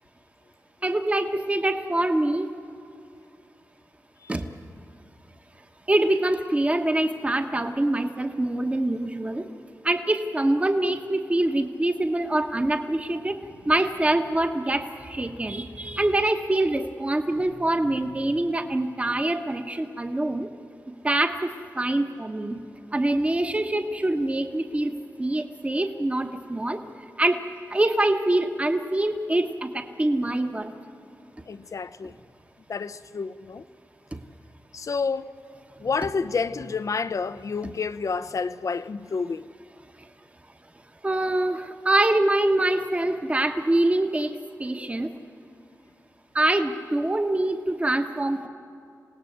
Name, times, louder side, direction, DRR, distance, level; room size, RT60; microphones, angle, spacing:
voice 1, 0.8-2.5 4.3-4.4 5.9-9.4 9.8-13.4 13.7-20.5 21.0-22.6 22.9-24.9 25.2-26.8 27.2-27.4 27.7-30.7 41.0-45.1 46.3-48.5, right 1 dB, 20° right, 1.2 m, -24 dB
voice 2, 31.4-32.2 32.7-33.6 34.7-35.4 35.8-39.5, left 5 dB, 60° left, 0.6 m, -29 dB
27.5 x 18.0 x 8.0 m
wide cardioid pair, 95°, 6 cm